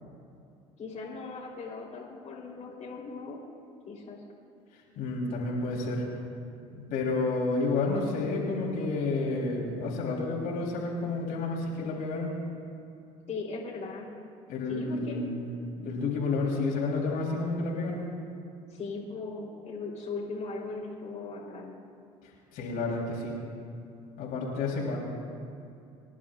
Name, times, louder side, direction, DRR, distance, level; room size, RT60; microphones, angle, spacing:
voice 1, 0.8-3.4 3.9-4.2 13.3-14.1 14.7-15.3 18.7-21.7, left 4 dB, 45° left, -4 dB, 3.6 m, -38 dB
voice 2, 5.0-6.0 6.7-12.3 14.5-18.0 22.5-23.3 24.2-25.0, left 3 dB, 65° left, -4 dB, 3.6 m, -30 dB
26.0 x 11.0 x 2.5 m, 2.5 s
hypercardioid pair, 65°, 16 cm